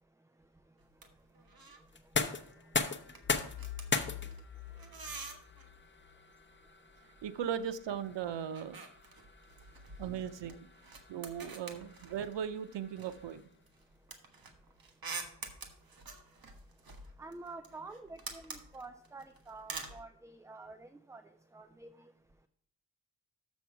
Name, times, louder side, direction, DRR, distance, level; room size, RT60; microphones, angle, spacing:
sound 1, 0.8-1.1 1.3-1.9 2.2-2.5 2.8-5.7 6.9-8.0 8.2-12.5 13.0-20.0, right 4 dB, 55° right, 1.4 m, -47 dB
sound 2, 1.9-13.7, left 4 dB, 25° left, 0.8 m, -40 dB
sound 3, 3.2-6.1, left 11 dB, 50° left, 1.1 m, -46 dB
voice 1, 7.2-8.8 10.0-10.7 11.1-13.4, right 8 dB, 90° right, 0.6 m, -38 dB
voice 2, 17.2-21.2 21.5-21.9, right 3 dB, 10° right, 0.4 m, -48 dB
7.0 x 6.2 x 5.8 m
cardioid pair, 80°, 42 cm